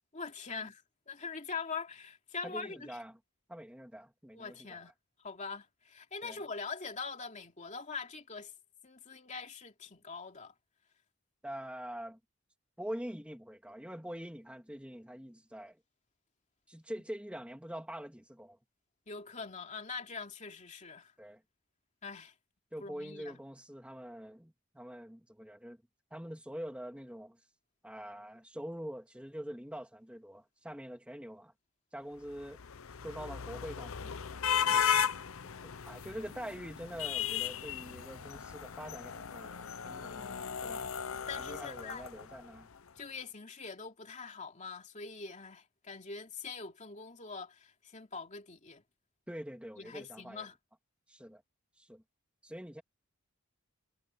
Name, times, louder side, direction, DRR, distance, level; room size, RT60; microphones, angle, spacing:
voice 1, 0.1-3.0 4.3-4.9 5.2-8.5 8.8-10.5 19.1-21.1 22.0-22.3 22.8-23.4 40.1-40.8 41.3-42.0 43.0-48.8 49.8-50.6, left 4 dB, 35° left, 2.9 m, -43 dB
voice 2, 2.4-3.2 3.5-4.8 6.2-6.4 11.4-12.2 12.8-15.8 16.7-18.6 21.2-21.4 22.7-25.8 26.1-27.4 27.8-31.5 31.9-32.6 33.0-34.8 35.4-40.2 40.6-40.9 41.4-42.7 49.3-50.5 51.1-51.4 51.8-52.0 52.4-52.8, equal, 5° right, 2.5 m, -45 dB
sound 1, 32.3-42.6, left 8 dB, 70° left, 0.7 m, -36 dB
head